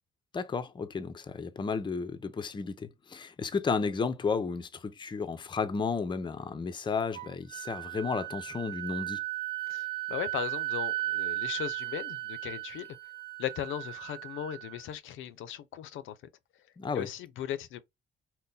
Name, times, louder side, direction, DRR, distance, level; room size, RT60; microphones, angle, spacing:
voice 1, 0.3-9.2 16.8-17.1, left 5 dB, 25° left, 0.5 m, -33 dB
Wind instrument woodwind instrument, 7.1-14.9, right 17 dB, 50° right, 0.9 m, -36 dB
voice 2, 9.7-13.0 13.4-16.2 16.9-17.8, left 10 dB, 80° left, 0.5 m, -37 dB
2.6 x 2.1 x 3.7 m
cardioid pair, 90°, 20 cm